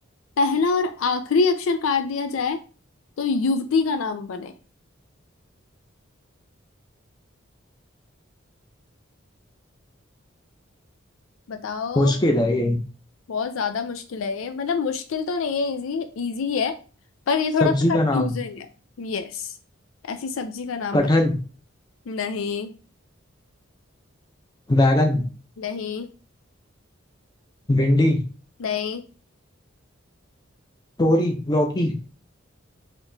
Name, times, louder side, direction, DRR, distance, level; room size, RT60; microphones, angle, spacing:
voice 1, 0.4-2.6 3.2-4.5 11.5-12.1 13.3-16.7 17.3-17.7 18.1-18.7 19.0-19.5 20.1-21.1 22.1-22.7 25.6-26.1 28.6-29.0, left 4 dB, 80° left, 8 dB, 0.4 m, -25 dB
voice 2, 12.0-12.8 17.6-18.3 20.9-21.4 24.7-25.2 27.7-28.2 31.0-31.9, left 1 dB, 20° left, 3 dB, 0.6 m, -19 dB
4.1 x 2.9 x 2.7 m, 0.36 s
head